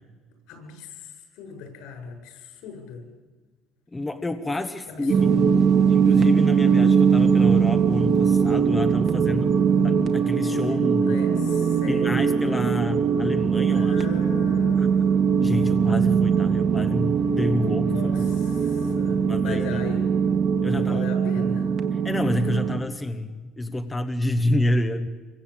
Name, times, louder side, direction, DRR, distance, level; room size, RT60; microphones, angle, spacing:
voice 1, 0.5-3.0 4.9-5.3 11.0-12.4 13.7-14.9 17.9-20.0 20.7-21.7, left 5 dB, 75° left, 5 dB, 7.7 m, -38 dB
voice 2, 3.9-5.4 5.9-9.5 9.8-11.2 11.9-14.0 14.8-14.9 15.4-18.5 19.3-19.8 20.6-21.1 21.3-21.6 21.9-25.1, left 1 dB, 10° left, 8 dB, 1.0 m, -28 dB
sound 1, 5.1-22.8, right 6 dB, 40° right, 1.8 m, -21 dB
26.0 x 23.5 x 8.8 m, 1.4 s
cardioid pair, 160°, 0 cm